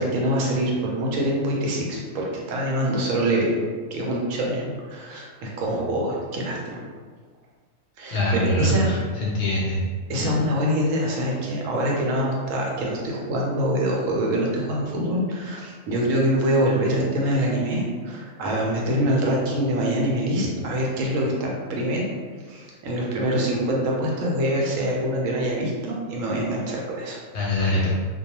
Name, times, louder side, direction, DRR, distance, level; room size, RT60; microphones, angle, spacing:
voice 1, 0.0-6.8 8.0-8.9 10.1-22.1 22.5-27.2, equal, 80° right, -2 dB, 1.0 m, -25 dB
voice 2, 8.1-9.8 27.3-27.9, left 1 dB, 65° left, -5 dB, 0.8 m, -24 dB
2.3 x 2.2 x 2.8 m, 1.5 s
omnidirectional pair, 1.4 m